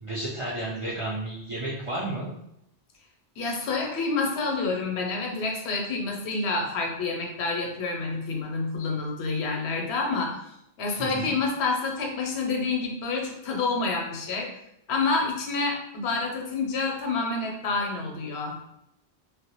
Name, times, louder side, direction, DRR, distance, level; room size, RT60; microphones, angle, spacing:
voice 1, 0.0-2.3 11.0-11.3, right 1 dB, 55° right, -7 dB, 0.3 m, -32 dB
voice 2, 3.4-10.5 10.8-14.5 14.9-18.6, left 3 dB, 80° left, 1 dB, 0.8 m, -28 dB
2.1 x 2.1 x 2.8 m, 0.79 s
omnidirectional pair, 1.1 m